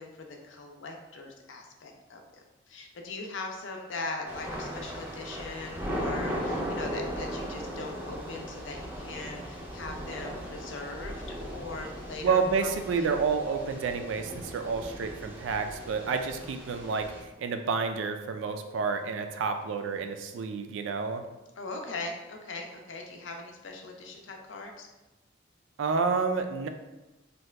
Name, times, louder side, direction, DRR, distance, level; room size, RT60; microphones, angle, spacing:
voice 1, 0.0-13.1 16.4-16.5 21.6-24.9, left 3 dB, 75° left, 2 dB, 0.5 m, -40 dB
Thunder / Rain, 4.3-17.2, equal, 10° right, 0.4 m, -38 dB
voice 2, 12.2-21.2 25.8-26.7, right 5 dB, 75° right, 7 dB, 0.3 m, -29 dB
2.8 x 2.2 x 3.3 m, 1.0 s
head